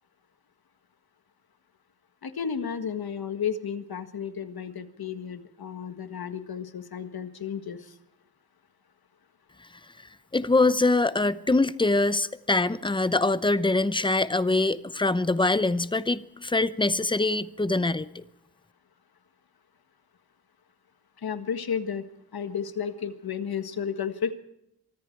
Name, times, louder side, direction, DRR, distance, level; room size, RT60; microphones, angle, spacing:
voice 1, 2.2-7.9 21.2-22.0 22.3-24.3, left 7 dB, 65° left, 1.6 m, -32 dB
voice 2, 10.3-18.2, left 2 dB, 10° left, 0.7 m, -24 dB
24.5 x 23.5 x 4.6 m
wide cardioid pair, 170°, 40 cm